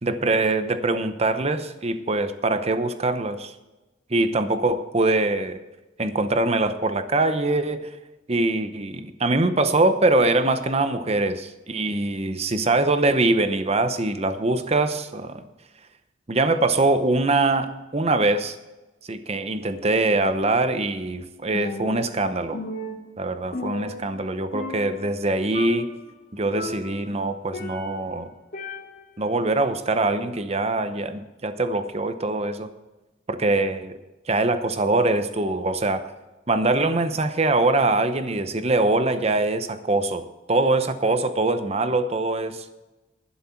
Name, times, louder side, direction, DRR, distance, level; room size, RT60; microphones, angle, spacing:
voice 1, 0.0-3.5 4.1-5.6 6.0-7.9 8.3-15.4 16.3-18.5 19.1-22.6 23.2-25.9 26.3-28.3 29.2-32.7 33.3-34.0 34.3-36.1 36.5-42.7, right 2 dB, 35° right, 10 dB, 0.8 m, -23 dB
Percussion, 21.5-22.2 22.5-24.3 24.5-25.2 25.5-26.0 26.5-28.1 28.5-29.2, left 2 dB, 50° left, 2.2 m, -35 dB
11.5 x 11.0 x 4.5 m, 1.1 s
head